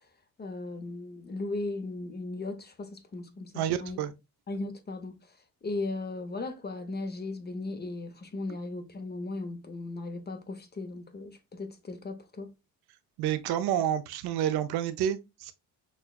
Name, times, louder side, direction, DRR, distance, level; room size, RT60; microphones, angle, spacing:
voice 1, 0.4-4.0 4.5-5.3 5.6-12.5, left 2 dB, 25° left, 0.8 m, -37 dB
voice 2, 3.6-4.1 13.2-15.5, right 10 dB, 90° right, 0.6 m, -29 dB
6.1 x 2.2 x 2.3 m
cardioid pair, 95°, 38 cm